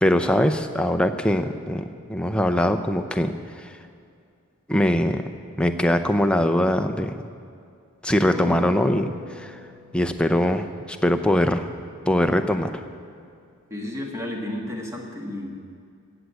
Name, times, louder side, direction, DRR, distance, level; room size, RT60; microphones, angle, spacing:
voice 1, 0.0-3.7 4.7-5.2 5.6-7.1 8.0-9.6 9.9-11.6 12.1-12.8, left 1 dB, 5° left, 7 dB, 0.6 m, -22 dB
sound 1, 8.2-13.1 13.5-13.6, left 2 dB, 30° right, 2.1 m, -42 dB
voice 2, 13.7-15.6, left 1 dB, 15° right, 0 dB, 1.8 m, -32 dB
16.0 x 8.0 x 8.3 m, 2.4 s
head